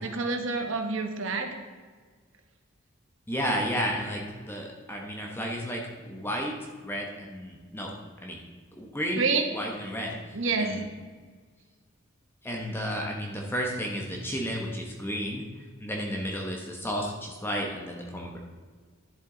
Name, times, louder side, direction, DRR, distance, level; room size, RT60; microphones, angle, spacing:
voice 1, 0.0-1.5 9.2-9.4 10.3-10.8, right 4 dB, 60° right, 5 dB, 1.1 m, -28 dB
voice 2, 3.3-6.5 6.8-7.9 8.2-8.4 8.8-10.8 12.4-15.4 15.8-18.4, equal, 10° left, 0 dB, 1.0 m, -32 dB
10.5 x 7.3 x 3.9 m, 1.5 s
head